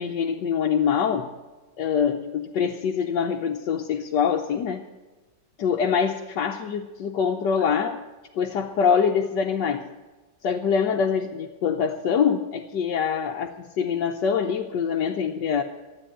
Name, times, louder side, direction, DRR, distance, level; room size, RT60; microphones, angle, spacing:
voice 1, 0.0-1.3 1.8-4.9 5.6-8.0 8.3-9.9 10.4-15.6, left 7 dB, 80° left, 0 dB, 1.5 m, -24 dB
13.0 x 9.2 x 9.9 m, 1.2 s
omnidirectional pair, 1.8 m